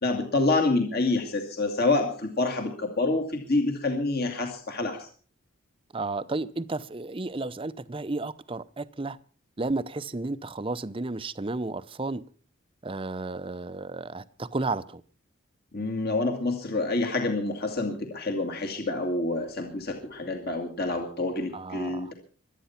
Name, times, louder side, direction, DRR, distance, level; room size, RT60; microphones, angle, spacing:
voice 1, 0.0-5.1 15.7-22.1, left 2 dB, 45° left, 2.1 m, -27 dB
voice 2, 5.9-9.2 9.6-12.2 12.8-15.0 21.5-22.1, right 3 dB, 25° right, 0.6 m, -32 dB
23.5 x 9.4 x 5.8 m
head